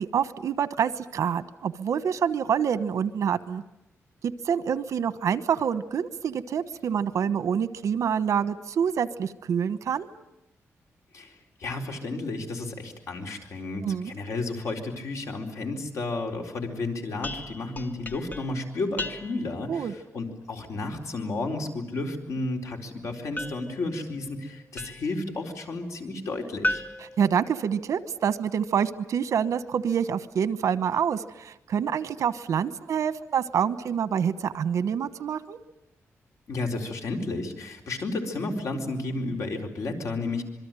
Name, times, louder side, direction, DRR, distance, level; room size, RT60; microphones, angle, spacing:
voice 1, 0.0-3.6 4.2-10.1 13.8-14.1 19.7-19.9 27.2-35.6, right 7 dB, 75° right, 14 dB, 1.1 m, -27 dB
voice 2, 11.1-26.8 36.5-40.4, left 2 dB, 70° left, 3 dB, 4.2 m, -32 dB
sound 1, 17.2-19.6 23.4-25.2 26.6-28.1, left 1 dB, 30° left, 1.1 m, -36 dB
26.5 x 22.5 x 9.1 m, 0.87 s
wide cardioid pair, 170°, 5 cm